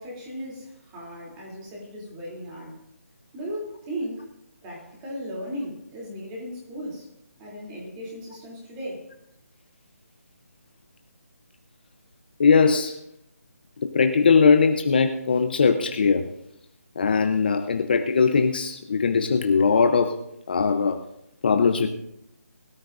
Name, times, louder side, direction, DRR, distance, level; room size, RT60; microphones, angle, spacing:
voice 1, 0.0-2.8 3.3-4.3 4.6-7.1 7.4-9.1, equal, 15° right, -3 dB, 3.0 m, -36 dB
voice 2, 12.4-13.0 13.8-16.2 17.0-20.2 20.5-21.0 21.4-21.9, left 5 dB, 35° left, 5 dB, 0.8 m, -20 dB
21.5 x 13.0 x 2.6 m, 0.78 s
hypercardioid pair, 170°, 9 cm